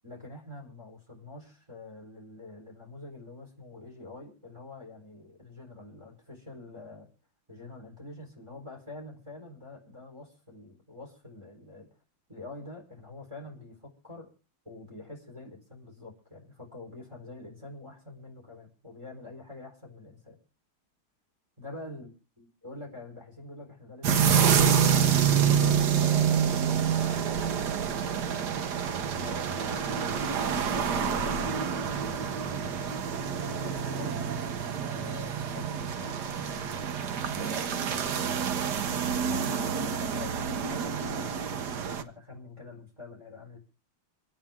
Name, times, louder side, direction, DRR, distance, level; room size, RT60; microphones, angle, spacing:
voice 1, 0.0-7.1 7.5-11.9 12.3-14.3 14.6-20.4 21.6-27.4 29.2-32.0 33.4-34.4 34.8-43.6, left 2 dB, 15° right, 0 dB, 4.2 m, -46 dB
sound 1, 24.0-42.0, right 7 dB, 60° right, 1.4 m, -27 dB
27.0 x 9.1 x 3.6 m, 0.33 s
omnidirectional pair, 2.3 m